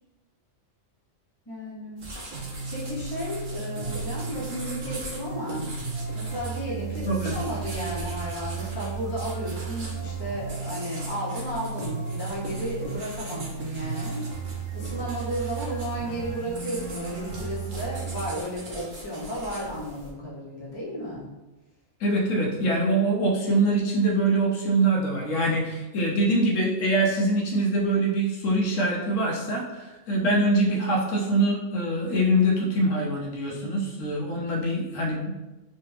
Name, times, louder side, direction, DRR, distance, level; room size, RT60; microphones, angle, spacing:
voice 1, 1.5-2.0 2.7-5.7 6.1-21.2 30.1-30.3, equal, 25° left, -6 dB, 0.6 m, -33 dB
sound 1, 2.0-20.1, right 1 dB, 50° right, 0.7 m, -41 dB
sound 2, 2.3-18.3, right 5 dB, 85° right, 1.2 m, -35 dB
voice 2, 7.1-7.4 22.0-35.4, right 1 dB, 75° left, -2 dB, 1.0 m, -24 dB
3.2 x 2.1 x 3.2 m, 1.1 s
omnidirectional pair, 1.4 m